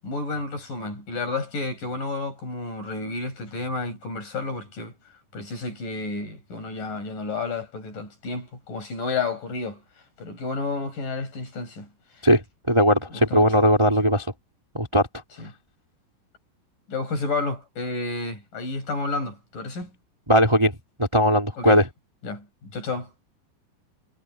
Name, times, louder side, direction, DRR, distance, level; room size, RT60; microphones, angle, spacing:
voice 1, 0.0-5.0 5.3-9.8 10.2-11.9 12.1-12.3 13.1-13.5 15.4-15.5 16.9-19.9 21.6-21.8 22.2-23.1, left 3 dB, 45° left, 8.2 m, -31 dB
voice 2, 12.2-14.3 14.7-15.1 20.3-21.8, equal, 5° right, 2.8 m, -19 dB
omnidirectional pair, 5.5 m